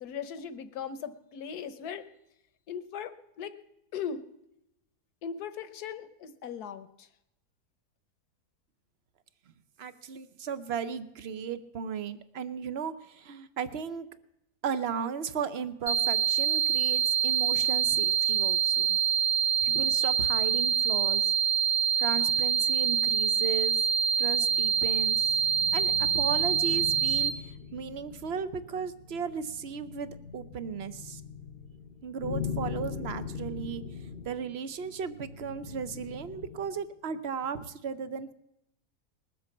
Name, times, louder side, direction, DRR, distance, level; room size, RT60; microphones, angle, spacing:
voice 1, 0.0-2.0 2.7-3.6 3.9-4.2 5.2-7.1, left 7 dB, 75° left, 12 dB, 1.4 m, -38 dB
voice 2, 9.8-14.1 14.6-19.0 19.6-21.3 22.0-23.8 24.2-25.4 25.7-31.2 32.0-33.8 34.2-38.3, right 7 dB, 50° right, 13 dB, 0.8 m, -35 dB
sound 1, 15.9-27.3, right 7 dB, 90° right, 2.4 m, -25 dB
sound 2, 24.1-36.8, left 6 dB, 40° left, 1.0 m, -41 dB
20.0 x 7.6 x 7.2 m, 0.83 s
omnidirectional pair, 1.7 m